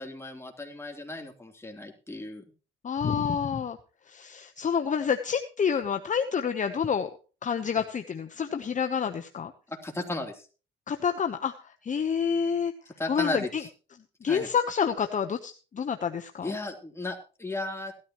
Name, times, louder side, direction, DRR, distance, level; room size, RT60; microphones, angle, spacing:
voice 1, 0.0-2.4 9.7-10.4 13.0-13.7 14.2-14.5 16.4-17.9, left 2 dB, 15° left, 2 dB, 3.3 m, -35 dB
voice 2, 2.8-3.8 4.1-7.1 7.4-9.5 10.9-11.5 11.8-12.7 13.1-13.6 14.2-16.5, left 7 dB, 40° left, 7 dB, 1.0 m, -28 dB
17.0 x 13.0 x 3.1 m, 0.36 s
cardioid pair, 90°, 20 cm